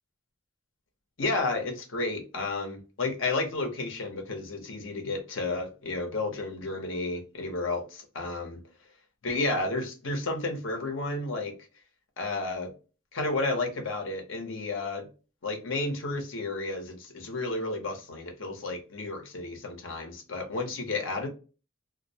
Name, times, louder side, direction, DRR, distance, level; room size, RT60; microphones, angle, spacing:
voice 1, 1.2-8.6 9.2-11.5 12.2-12.7 13.1-15.1 15.4-21.3, left 2 dB, 70° left, 0.7 m, -32 dB
2.3 x 2.1 x 2.6 m
head